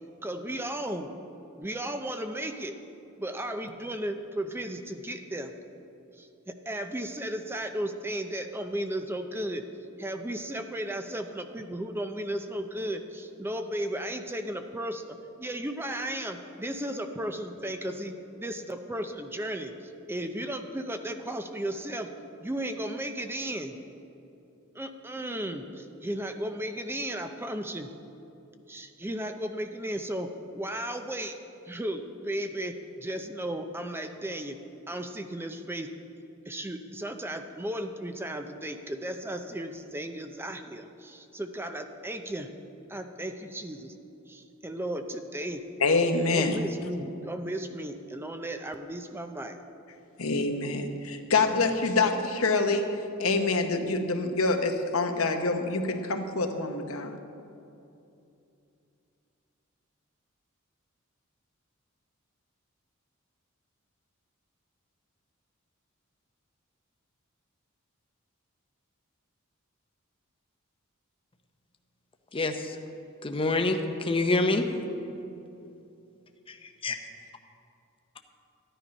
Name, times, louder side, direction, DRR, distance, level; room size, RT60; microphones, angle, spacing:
voice 1, 0.2-1.1 1.6-2.7 3.2-5.5 6.1-9.6 10.0-22.1 22.4-23.7 24.7-27.9 28.7-31.4 31.7-34.6 34.9-35.9 36.5-42.5 42.9-43.9 44.3-45.6 46.3-49.6, right 1 dB, 10° right, 7 dB, 0.5 m, -35 dB
voice 2, 45.8-46.6 50.2-52.9 53.2-57.2, left 3 dB, 75° left, 5 dB, 1.0 m, -26 dB
voice 3, 72.3-72.7 73.2-74.6 76.8-76.9, left 2 dB, 25° left, 5 dB, 0.8 m, -26 dB
13.5 x 10.0 x 5.3 m, 2.7 s
head